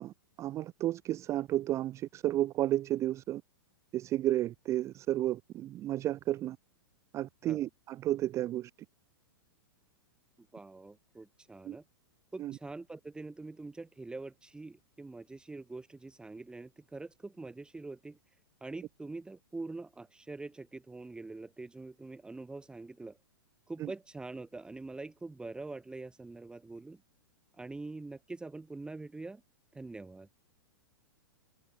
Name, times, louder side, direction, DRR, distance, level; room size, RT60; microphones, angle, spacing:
voice 1, 0.0-3.4 3.9-6.6 7.1-8.7 11.7-11.8 12.4-12.6 23.8-23.9, right 14 dB, 25° right, 0.5 m, -32 dB
voice 2, 10.4-11.8 12.3-23.2 23.7-27.0 27.5-29.4 29.7-30.3, right 3 dB, 5° right, 2.3 m, -44 dB
figure-of-eight pair, 105°, 12 cm